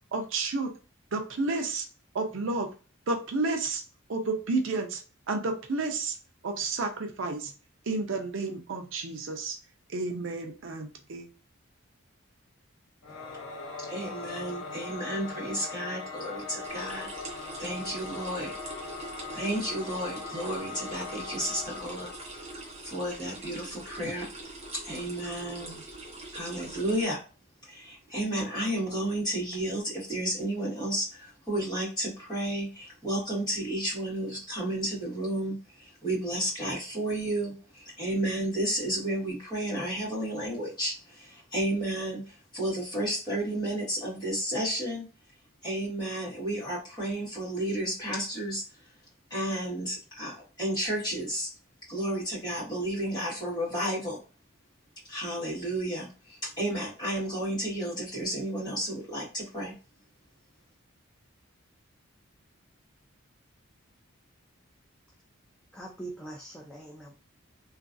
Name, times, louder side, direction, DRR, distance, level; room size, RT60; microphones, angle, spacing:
voice 1, 0.1-0.7 1.1-1.9 2.1-2.7 3.1-3.8 4.1-5.0 5.3-6.1 6.4-7.5 7.9-9.6 9.9-11.3, right 3 dB, 60° right, 4 dB, 0.5 m, -31 dB
Singing / Musical instrument, 13.0-23.1, left 3 dB, 65° left, 0.8 m, -40 dB
voice 2, 13.9-17.1 17.6-18.5 19.3-22.1 22.8-24.3 24.7-25.8 26.3-27.2 27.7-35.6 36.0-45.1 45.6-48.6 49.3-51.5 51.9-54.2 55.1-59.7, right 1 dB, 20° left, -7 dB, 1.6 m, -32 dB
sound 1, 16.6-27.0, right 2 dB, 30° right, 0.7 m, -43 dB
voice 3, 65.7-67.1, right 2 dB, 5° left, -2 dB, 0.3 m, -42 dB
3.0 x 2.5 x 2.5 m, 0.34 s
head